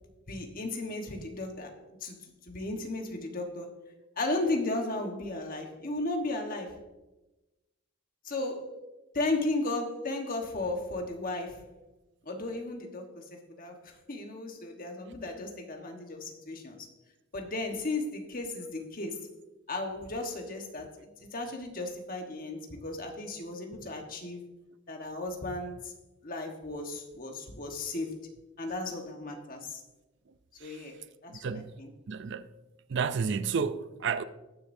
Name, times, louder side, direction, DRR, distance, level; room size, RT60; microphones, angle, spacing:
voice 1, 0.3-3.7 4.2-6.8 8.2-8.7 9.1-11.6 12.2-16.9 17.3-19.3 19.7-24.4 24.9-25.9 26.2-28.3 28.6-29.8 30.6-31.0 31.2-31.9, left 2 dB, 40° left, 1.3 m, -35 dB
voice 2, 32.1-32.5 32.9-34.2, right 5 dB, 55° right, 0.4 m, -30 dB
19.5 x 6.7 x 2.7 m
head